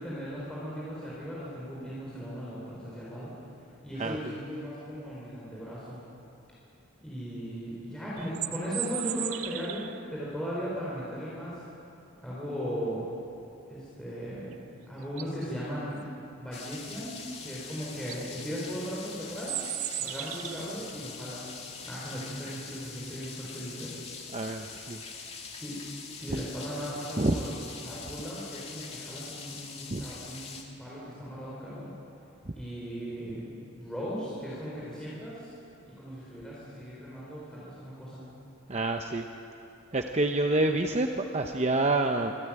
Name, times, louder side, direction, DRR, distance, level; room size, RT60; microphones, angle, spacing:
voice 1, 0.0-3.3 3.8-6.0 7.0-11.5 12.2-13.0 13.7-14.6 14.9-16.0 16.4-19.6 20.0-21.5 21.8-23.9 25.6-25.8 26.2-27.5 27.8-31.9 32.5-33.4 33.8-35.5 35.9-38.2, equal, 5° left, -8 dB, 4.6 m, -37 dB
sound 1, 8.2-10.0 14.5-14.6 15.0-15.4 17.5-17.6 17.9-18.2 19.4-20.8, right 14 dB, 85° right, 0.7 m, -36 dB
sound 2, 16.5-30.6, left 5 dB, 30° left, 2.1 m, -43 dB
voice 2, 24.3-25.0 26.3-26.4 27.2-27.3 29.9-30.0 38.7-39.3 39.9-42.3, right 2 dB, 30° right, 4 dB, 0.8 m, -27 dB
26.0 x 13.5 x 8.9 m, 2.8 s
head